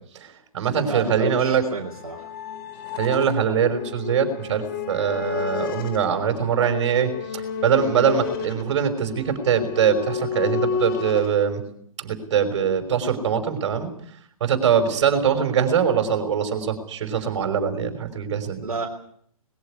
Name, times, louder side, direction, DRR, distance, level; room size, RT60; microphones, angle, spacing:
voice 1, 0.1-1.6 3.0-11.6 12.0-13.9 14.4-18.6, right 7 dB, 50° right, 6 dB, 5.5 m, -22 dB
sound 1, 0.6-11.3, left 6 dB, 40° left, 2.7 m, -32 dB
voice 2, 0.8-2.2 14.6-14.9 18.6-18.9, right 3 dB, 75° right, 1 dB, 3.3 m, -31 dB
21.5 x 15.5 x 9.8 m, 0.64 s
figure-of-eight pair, 130°, 19 cm